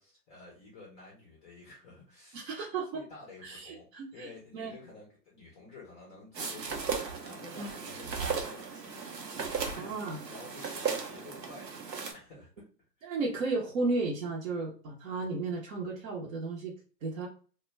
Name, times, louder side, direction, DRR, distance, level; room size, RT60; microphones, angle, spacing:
voice 1, 0.0-2.5 2.9-11.8 12.1-12.7 13.0-13.2, left 2 dB, 15° left, -3 dB, 0.4 m, -51 dB
voice 2, 2.3-3.0 3.4-4.3 4.5-4.7 7.6-7.7 9.8-10.2 13.0-16.7 17.0-17.3, right 3 dB, 55° right, -2 dB, 0.7 m, -34 dB
sound 1, 6.3-12.1, right 5 dB, 85° right, 0.8 m, -36 dB
2.2 x 2.1 x 3.1 m, 0.39 s
hypercardioid pair, 115°, 49 cm